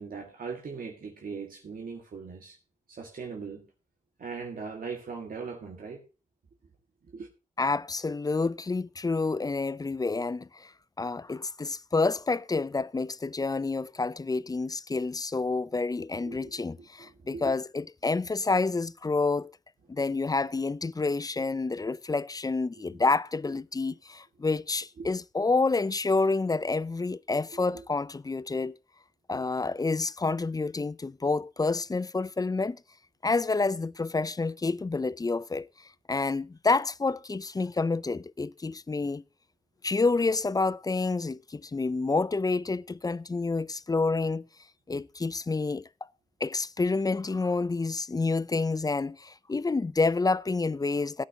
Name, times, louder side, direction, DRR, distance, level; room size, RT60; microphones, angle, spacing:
voice 1, 0.0-2.6 2.9-3.7 4.2-6.0 7.1-7.3 16.2-16.6 17.0-17.5 25.0-25.1 27.7-27.8, right 5 dB, 85° right, 1.8 m, -39 dB
voice 2, 7.6-10.7 11.0-19.5 19.9-28.8 29.3-32.8 33.2-39.2 39.8-44.5 44.9-45.9 46.4-51.2, left 3 dB, 25° left, 0.5 m, -28 dB
16.5 x 9.3 x 2.8 m
wide cardioid pair, 80°, 14 cm